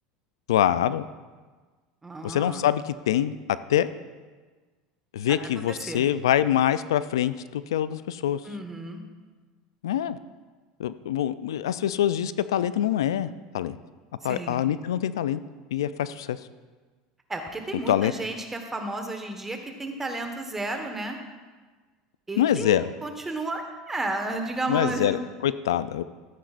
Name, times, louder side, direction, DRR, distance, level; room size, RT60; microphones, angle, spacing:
voice 1, 0.5-1.0 2.2-3.4 3.7-3.9 5.1-8.4 9.8-10.2 10.8-13.3 13.5-13.8 14.2-15.4 15.7-16.4 17.9-18.1 22.4-22.9 24.7-26.0, left 11 dB, 90° left, 15 dB, 0.3 m, -25 dB
voice 2, 2.0-2.6 5.5-6.0 8.4-9.0 14.2-14.6 17.3-21.2 22.3-25.2, right 2 dB, 15° right, 4 dB, 1.3 m, -32 dB
13.5 x 9.2 x 2.5 m, 1.4 s
supercardioid pair, 105°, 2 cm